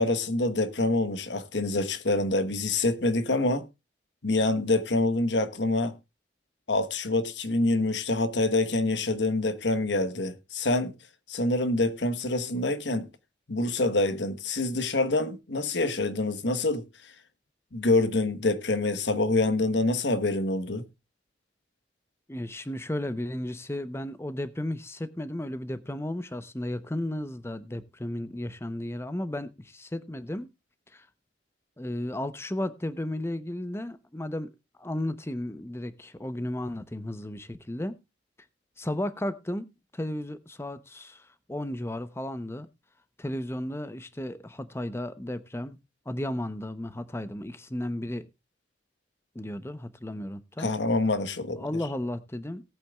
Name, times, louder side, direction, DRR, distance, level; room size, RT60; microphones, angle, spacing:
voice 1, 0.0-3.7 4.2-5.9 6.7-10.9 11.3-13.1 13.5-16.8 17.7-20.9 50.6-51.7, left 2 dB, 85° left, 1.2 m, -26 dB
voice 2, 22.3-30.5 30.9-31.0 31.8-34.5 34.8-38.0 38.8-42.7 43.2-45.8 46.1-48.3 49.3-50.7 51.6-52.6, left 1 dB, 15° left, 0.8 m, -34 dB
18.5 x 8.6 x 2.3 m
head